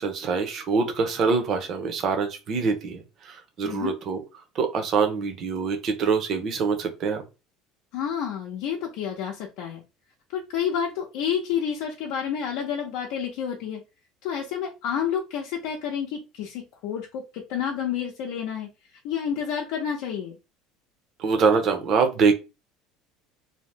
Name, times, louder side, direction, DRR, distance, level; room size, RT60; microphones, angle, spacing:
voice 1, 0.0-4.2 4.5-7.2 21.2-22.3, right 5 dB, 40° right, 6 dB, 0.7 m, -24 dB
voice 2, 3.6-3.9 7.9-9.8 10.3-13.8 14.2-18.7 19.0-20.4, left 8 dB, 70° left, -1 dB, 0.6 m, -29 dB
2.7 x 2.0 x 3.2 m, 0.28 s
cardioid pair, 155°, 0 cm